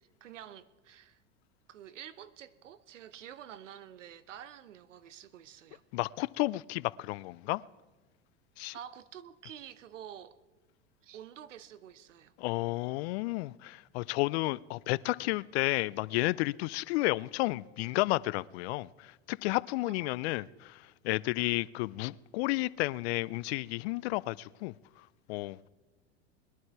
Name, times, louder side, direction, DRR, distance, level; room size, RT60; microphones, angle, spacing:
voice 1, 0.2-1.2 1.7-5.8 8.7-10.4 11.0-12.3 19.8-20.1 20.4-20.6, right 10 dB, 85° right, 0.9 m, -49 dB
voice 2, 5.9-7.6 8.6-8.7 12.4-20.8 21.0-24.7 25.3-25.6, left 20 dB, 60° left, 0.5 m, -32 dB
21.0 x 11.5 x 4.7 m
hypercardioid pair, 95°, 36 cm